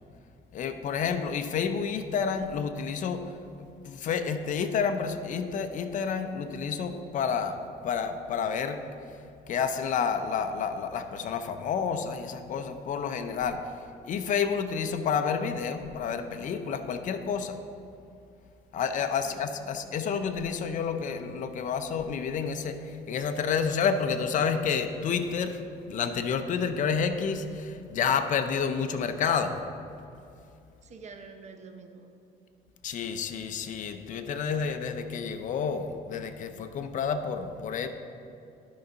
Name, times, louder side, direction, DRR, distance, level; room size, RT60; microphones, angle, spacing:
voice 1, 0.5-3.3 3.6-7.6 7.8-8.8 9.5-13.7 14.1-17.6 18.7-25.6 25.9-29.6 32.8-37.9, left 6 dB, 50° left, 8 dB, 0.6 m, -29 dB
voice 2, 19.2-19.9 30.8-32.1, right 4 dB, 45° right, 5 dB, 0.8 m, -47 dB
11.0 x 4.0 x 5.3 m, 2.6 s
cardioid pair, 110°, 17 cm